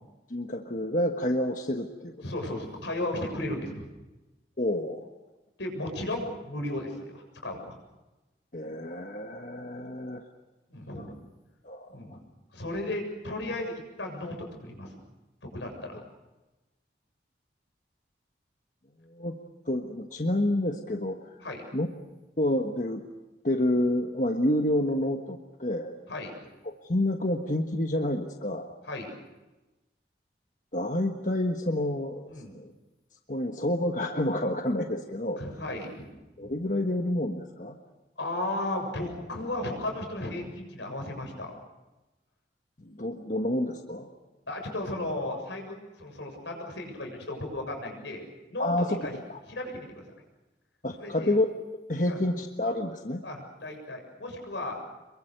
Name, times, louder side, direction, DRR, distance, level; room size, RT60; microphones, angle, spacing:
voice 1, 0.3-2.1 4.6-5.1 8.5-10.2 10.9-11.1 11.6-12.0 19.1-19.3 19.7-21.3 21.7-21.9 22.4-23.1 23.4-26.0 26.8-28.7 30.7-32.7 33.3-35.4 36.4-37.8 42.8-44.1 48.6-49.0 49.3-49.4 50.8-51.5 51.9-53.2, left 1 dB, 45° left, 4 dB, 1.4 m, -29 dB
voice 2, 2.2-3.8 5.6-7.8 10.7-11.1 11.9-12.2 12.5-15.0 15.4-16.0 21.4-21.6 26.1-26.3 28.9-29.1 32.3-32.5 35.4-36.0 36.5-36.6 38.2-41.5 44.5-48.2 48.5-48.7 49.0-49.1 49.5-50.0 51.0-51.3 52.1-52.2 53.2-54.8, left 1 dB, 90° left, 3 dB, 7.4 m, -35 dB
27.5 x 23.0 x 6.7 m, 1.1 s
head